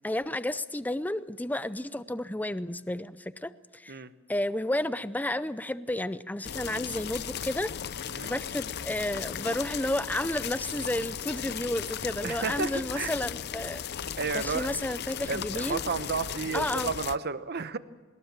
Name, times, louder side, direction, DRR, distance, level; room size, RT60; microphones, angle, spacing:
voice 1, 0.0-4.0 4.3-7.7 8.2-15.8 16.5-16.9, left 1 dB, 10° left, 14 dB, 0.6 m, -32 dB
sound 1, 6.4-17.2, left 8 dB, 55° left, 0.6 m, -36 dB
voice 2, 12.2-13.1 14.2-14.7 15.3-17.8, right 4 dB, 50° right, 13 dB, 1.0 m, -32 dB
21.5 x 20.5 x 7.4 m, 1.4 s
head